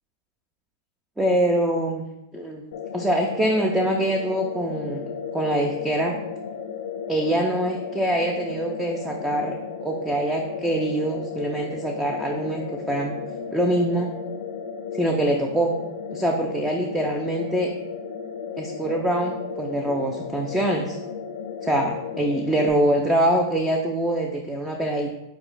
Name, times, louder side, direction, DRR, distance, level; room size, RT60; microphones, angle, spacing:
voice 1, 1.2-2.1 2.3-2.6 2.9-6.1 7.1-9.6 9.8-13.2 13.5-14.1 14.9-15.7 16.1-17.7 18.6-21.0 21.6-25.1, right 1 dB, 5° right, 1 dB, 0.3 m, -24 dB
sound 1, 2.7-22.7, left 6 dB, 75° left, 0.4 m, -34 dB
4.8 x 4.5 x 2.5 m, 0.92 s
supercardioid pair, 160°, 2 cm